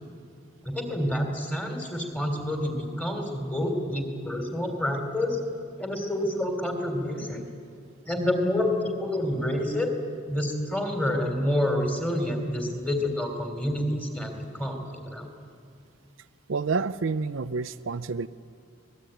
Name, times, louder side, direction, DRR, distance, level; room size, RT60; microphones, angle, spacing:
voice 1, 0.6-5.4 5.8-7.4 8.0-9.9 10.3-15.3, left 1 dB, 5° left, 3 dB, 3.3 m, -28 dB
voice 2, 16.5-18.3, right 4 dB, 70° right, 12 dB, 0.5 m, -28 dB
24.5 x 20.0 x 9.2 m, 2.3 s
head